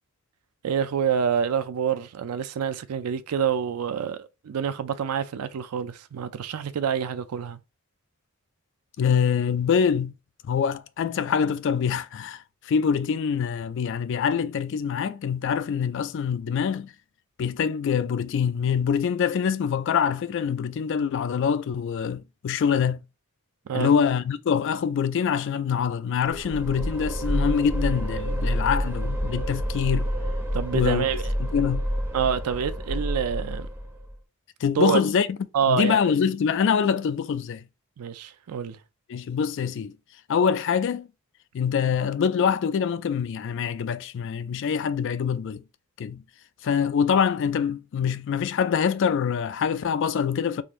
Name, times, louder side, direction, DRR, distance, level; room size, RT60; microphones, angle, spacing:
voice 1, 0.6-7.6 23.7-23.9 30.5-31.3 32.1-33.7 34.8-35.0 35.5-36.0 38.0-38.8, right 7 dB, 85° right, 0.4 m, -27 dB
voice 2, 9.0-10.1 10.4-16.9 17.4-23.0 23.7-30.1 30.7-31.1 31.4-31.8 34.6-35.4 35.7-37.6 39.1-40.0 40.3-41.1 41.5-45.6 46.0-46.2 46.6-50.6, left 7 dB, 55° left, 0.3 m, -25 dB
sound 1, 26.3-34.1, equal, 10° right, 0.8 m, -28 dB
3.7 x 2.5 x 3.0 m
head